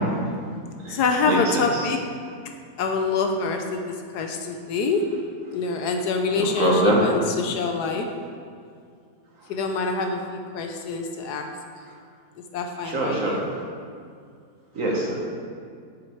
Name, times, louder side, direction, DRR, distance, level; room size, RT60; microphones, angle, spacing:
voice 1, 0.9-2.0 2.8-5.1 5.5-8.1 9.5-11.5 12.5-13.5, left 4 dB, 70° left, 4 dB, 1.1 m, -26 dB
voice 2, 6.4-7.0 12.9-13.4 14.7-15.1, right 2 dB, 50° right, -2 dB, 1.5 m, -23 dB
7.5 x 6.5 x 4.5 m, 2.3 s
omnidirectional pair, 1.9 m